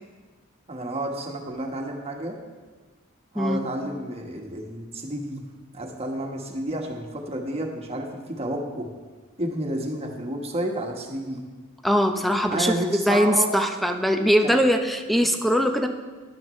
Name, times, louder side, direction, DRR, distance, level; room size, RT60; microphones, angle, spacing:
voice 1, 0.7-2.4 3.3-8.9 9.4-11.5 12.5-13.5 14.4-14.5, right 1 dB, 30° right, 1 dB, 1.5 m, -30 dB
voice 2, 11.8-15.9, equal, ahead, 5 dB, 0.7 m, -21 dB
15.5 x 11.5 x 3.2 m, 1.4 s
head